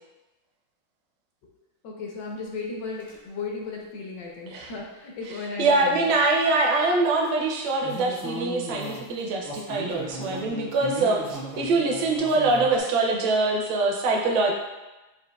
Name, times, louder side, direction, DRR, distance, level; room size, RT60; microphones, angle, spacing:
voice 1, 1.8-6.1, left 4 dB, 70° left, -1 dB, 1.2 m, -35 dB
sound 1, 3.0-3.2 7.8-12.8, right 1 dB, 25° left, 0.4 m, -36 dB
voice 2, 5.6-14.5, right 3 dB, 75° right, 1 dB, 1.3 m, -24 dB
6.3 x 2.5 x 2.2 m, 1.1 s
omnidirectional pair, 2.2 m